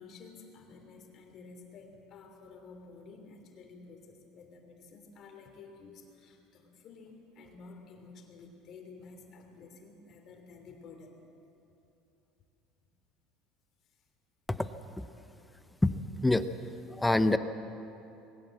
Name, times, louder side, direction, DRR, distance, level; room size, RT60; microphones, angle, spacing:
voice 1, 0.0-11.2 13.9-14.0, left 4 dB, 40° left, 4 dB, 3.1 m, -52 dB
voice 2, 17.0-17.4, left 2 dB, 5° left, 11 dB, 0.6 m, -25 dB
20.5 x 17.0 x 7.8 m, 2.8 s
cardioid pair, 145°, 0 cm